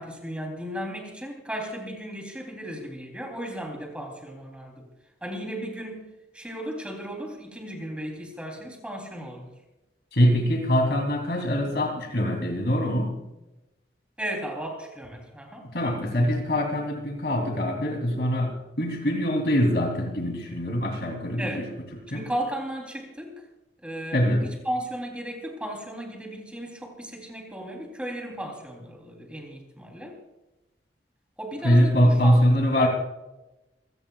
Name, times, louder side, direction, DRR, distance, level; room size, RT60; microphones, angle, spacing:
voice 1, 0.0-4.9 5.2-6.0 6.3-9.5 14.2-15.7 21.4-21.7 22.1-23.4 23.8-30.2 31.4-32.4 32.7-32.9, right 1 dB, 5° right, 1 dB, 3.3 m, -35 dB
voice 2, 10.1-13.2 15.7-21.6 22.1-22.3 24.1-24.4 31.6-32.9, equal, 65° left, 2 dB, 3.1 m, -23 dB
27.5 x 17.0 x 2.4 m, 1.0 s
head